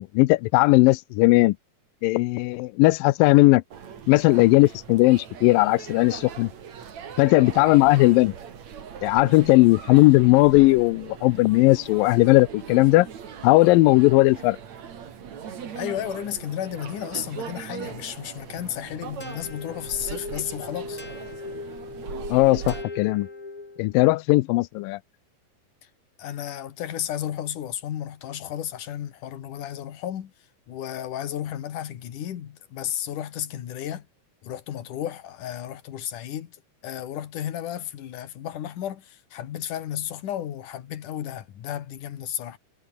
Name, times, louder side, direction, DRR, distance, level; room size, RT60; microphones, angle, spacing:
voice 1, 0.0-1.6 2.0-3.6 4.1-6.5 7.2-8.3 9.0-13.1 13.4-14.6 22.3-23.3 23.8-25.0, left 20 dB, 85° left, 2.0 m, -18 dB
sound 1, 3.7-22.8, right 7 dB, 45° right, 3.4 m, -40 dB
voice 2, 15.8-21.0 26.2-30.3 30.7-34.1 34.4-36.6 36.8-42.6, left 11 dB, 60° left, 3.0 m, -33 dB
sound 2, 19.2-24.0, left 3 dB, 20° left, 3.7 m, -39 dB
omnidirectional pair, 4.6 m